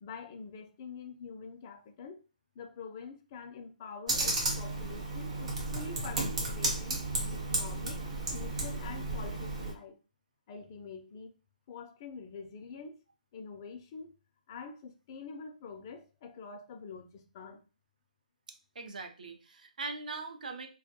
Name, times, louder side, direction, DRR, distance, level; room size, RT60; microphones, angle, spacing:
voice 1, 0.0-2.2 2.6-7.0 7.3-8.0 8.3-10.0 10.5-11.3 11.7-13.0 13.3-14.1 14.5-17.6, left 5 dB, 25° left, 5 dB, 0.3 m, -46 dB
Computer keyboard, 4.1-9.7, right 2 dB, 50° right, 0.9 m, -33 dB
voice 2, 18.8-20.7, right 3 dB, 70° right, 5 dB, 0.5 m, -41 dB
2.2 x 2.1 x 2.7 m, 0.33 s
hypercardioid pair, 160°, 5 cm